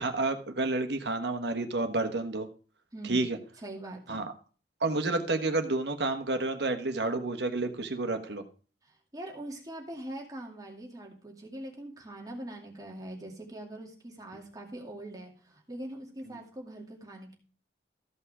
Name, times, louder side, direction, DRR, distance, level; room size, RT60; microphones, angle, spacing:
voice 1, 0.0-2.5 3.0-3.4 4.1-4.3 4.8-8.4 16.3-16.4, right 2 dB, 70° right, 7 dB, 1.3 m, -30 dB
voice 2, 2.9-3.2 3.6-4.3 8.8-17.4, right 1 dB, 20° right, 0 dB, 2.3 m, -42 dB
14.0 x 5.6 x 4.9 m, 0.39 s
head